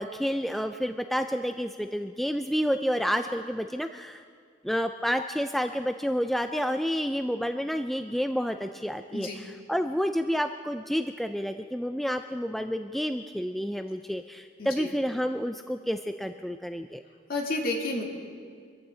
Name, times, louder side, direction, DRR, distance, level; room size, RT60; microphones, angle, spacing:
voice 1, 0.0-4.2 4.6-17.0, equal, ahead, 7 dB, 0.4 m, -29 dB
voice 2, 17.3-18.0, left 2 dB, 50° left, -1 dB, 2.6 m, -30 dB
25.0 x 14.5 x 3.8 m, 2.1 s
head